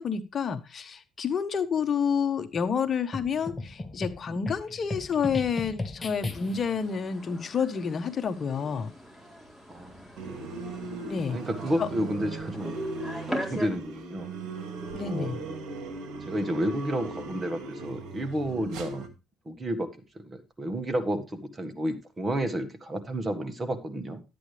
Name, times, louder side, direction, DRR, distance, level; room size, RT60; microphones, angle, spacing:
voice 1, 0.0-8.9 11.0-11.4 11.8-11.9 14.9-15.4, left 6 dB, 45° left, 9 dB, 1.2 m, -29 dB
sound 1, 3.1-6.8, left 2 dB, 25° left, 1.5 m, -36 dB
sound 2, 6.3-13.7, equal, 5° right, 4.3 m, -41 dB
voice 2, 9.7-10.6 11.3-12.7 13.3-14.3 15.0-15.3 16.2-19.1 19.4-19.9 20.1-24.2, right 1 dB, 25° right, 8 dB, 1.7 m, -31 dB
sound 3, 10.2-19.1, right 3 dB, 70° right, 2.3 m, -38 dB
12.5 x 8.7 x 3.4 m, 0.28 s
cardioid pair, 95°, 0 cm